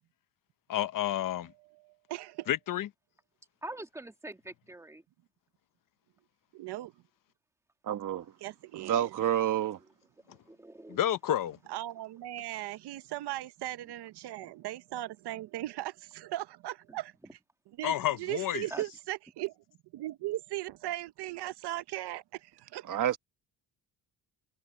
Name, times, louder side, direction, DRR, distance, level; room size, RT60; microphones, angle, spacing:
voice 1, 0.7-1.5 2.5-2.9 10.9-11.6 17.8-18.7, left 12 dB, 50° left, 0.9 m, -30 dB
voice 2, 1.7-2.5 6.5-6.9 8.4-9.1 11.7-17.2 17.8-19.6 19.9-22.9, right 15 dB, 65° right, 0.9 m, -38 dB
voice 3, 3.6-5.0 10.3-11.0 14.4-14.5 16.9-17.0 17.2-17.3 18.7-18.8, right 1 dB, 5° right, 1.6 m, -44 dB
voice 4, 7.8-8.3 8.7-9.8 22.9-23.2, right 10 dB, 45° right, 1.3 m, -29 dB
cardioid pair, 140°, 42 cm